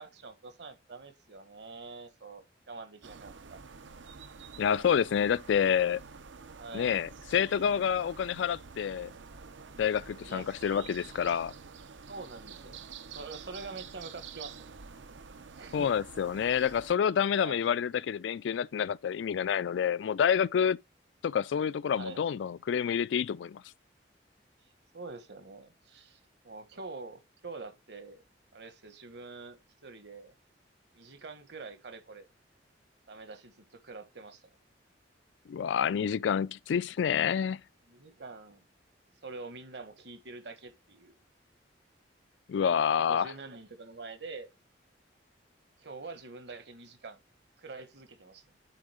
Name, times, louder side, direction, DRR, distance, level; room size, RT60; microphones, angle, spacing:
voice 1, 0.0-3.6 6.6-6.9 10.3-10.6 12.1-12.9 13.1-14.7 15.5-15.9 17.4-17.6 19.4-19.5 22.0-22.2 24.9-28.2 28.5-30.3 30.9-32.3 33.1-34.5 37.9-38.6 39.2-41.2 42.6-44.5 45.8-47.2 47.6-48.4, right 3 dB, 65° right, 1.4 m, -45 dB
sound 1, 3.0-16.9, right 5 dB, 80° right, 0.7 m, -48 dB
voice 2, 4.6-6.0 6.7-9.1 9.8-11.5 15.7-20.8 21.2-23.6 35.5-37.6 42.5-43.3, left 8 dB, 75° left, 0.3 m, -28 dB
9.0 x 3.7 x 4.9 m
head